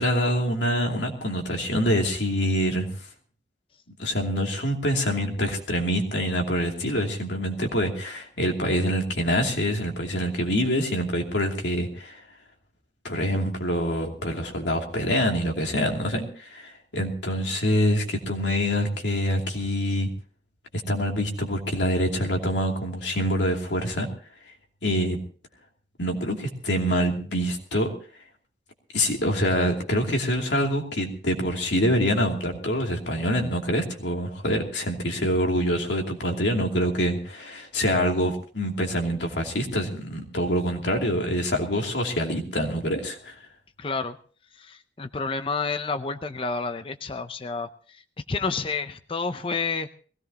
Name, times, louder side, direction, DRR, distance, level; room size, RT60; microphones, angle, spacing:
voice 1, 0.0-3.1 4.0-12.2 13.0-20.1 20.9-24.1 24.8-25.2 26.0-27.9 28.9-43.4, equal, 85° left, 2 dB, 2.8 m, -25 dB
voice 2, 43.8-44.2 44.6-47.7 48.3-49.9, left 4 dB, 30° left, 10 dB, 0.6 m, -29 dB
21.0 x 17.0 x 2.9 m, 0.42 s
head